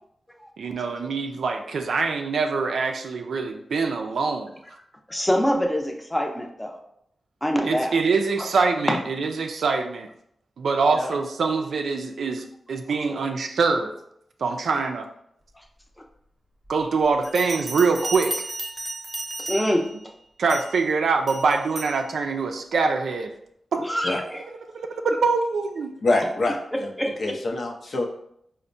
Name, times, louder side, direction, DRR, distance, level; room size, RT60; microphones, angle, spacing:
voice 1, 0.6-4.5 7.6-10.1 10.6-13.9 14.4-15.1 16.7-18.3 20.4-23.3 23.7-24.0 24.7-25.9, right 4 dB, 80° right, 4 dB, 0.3 m, -24 dB
voice 2, 5.1-6.7 7.4-7.9 8.4-8.5 10.9-11.2 13.1-13.2 19.5-19.8 23.8-24.4 26.7-27.4, equal, 10° left, 2 dB, 0.6 m, -25 dB
Bell, 17.2-19.9 20.5-20.8 21.3-22.0, right 2 dB, 35° right, 0.7 m, -33 dB
voice 3, 26.0-26.6 26.8-26.9 27.2-28.1, left 2 dB, 60° left, 1 dB, 0.6 m, -24 dB
4.2 x 2.1 x 2.5 m, 0.72 s
cardioid pair, 55°, 0 cm